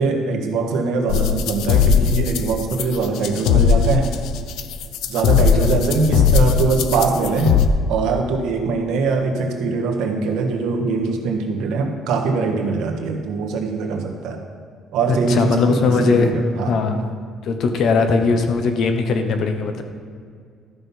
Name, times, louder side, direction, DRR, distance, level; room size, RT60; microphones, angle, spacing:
voice 1, 0.0-4.1 5.1-7.6 7.9-14.4 14.9-16.7, right 4 dB, 70° right, 3 dB, 1.4 m, -22 dB
sound 1, 1.1-7.7, left 7 dB, 70° left, 0.5 m, -18 dB
voice 2, 15.1-16.4 16.7-17.1 17.4-19.8, left 4 dB, 50° left, 6 dB, 0.9 m, -19 dB
13.0 x 5.8 x 5.5 m, 2.2 s
cardioid pair, 160°, 0 cm